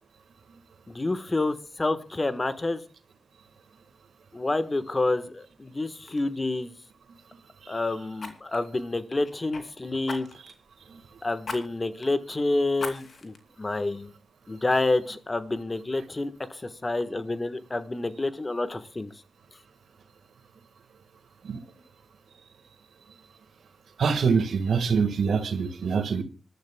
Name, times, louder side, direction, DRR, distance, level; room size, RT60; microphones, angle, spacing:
voice 1, 0.9-2.8 4.3-6.7 7.7-10.3 11.2-14.1 14.5-19.1, left 2 dB, 35° left, 12 dB, 1.2 m, -28 dB
Fire, 5.5-5.7 6.1-6.3 8.2-9.6 10.1-10.6 11.4-11.6 12.0-12.1 12.8-13.4 13.9-14.0, left 4 dB, 65° left, 2.6 m, -38 dB
voice 2, 24.0-26.2, right 5 dB, 80° right, 8 dB, 1.6 m, -24 dB
26.0 x 12.0 x 2.2 m, 0.34 s
cardioid pair, 50°, 0 cm